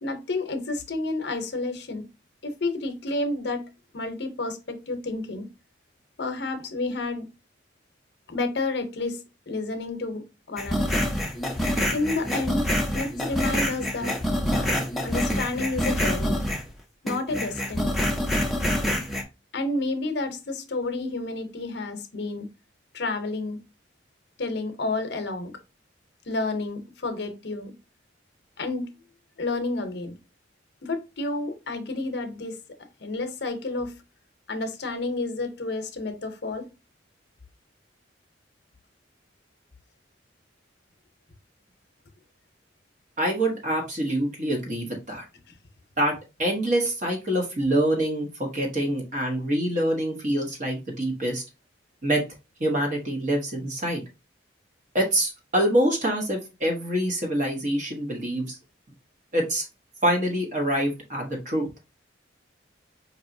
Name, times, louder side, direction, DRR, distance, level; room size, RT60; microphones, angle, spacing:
voice 1, 0.0-2.1 2.4-3.6 3.9-5.5 6.2-7.3 8.3-9.2 9.5-11.0 11.9-12.6 12.9-14.2 14.5-14.7 15.0-16.4 17.0-17.9 19.5-22.5 22.9-23.6 24.4-25.5 26.3-27.7 28.6-28.9 29.4-30.2 30.8-32.6 33.0-33.9 34.5-36.7, left 2 dB, 60° left, 0.7 m, -30 dB
sound 1, 10.6-16.7 17.1-19.2, equal, ahead, 0.6 m, -26 dB
voice 2, 43.2-45.2 46.0-51.4 52.0-52.2 52.6-54.0 54.9-58.6 59.3-59.6 60.0-61.7, right 1 dB, 40° right, 1.0 m, -25 dB
4.6 x 2.9 x 2.6 m
head